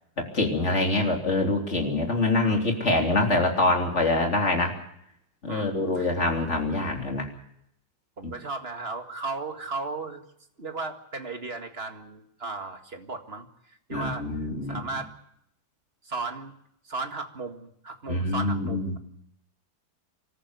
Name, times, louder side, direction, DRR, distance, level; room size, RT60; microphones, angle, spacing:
voice 1, 0.2-4.7 5.4-7.3 8.2-8.3 13.9-14.8 18.1-19.0, left 2 dB, 35° left, 2 dB, 3.7 m, -25 dB
voice 2, 5.5-6.5 8.2-10.2 10.6-14.3 14.7-15.1 16.0-16.6 16.8-19.0, right 3 dB, 30° right, 5 dB, 2.1 m, -36 dB
25.5 x 14.0 x 8.1 m, 0.74 s
omnidirectional pair, 2.1 m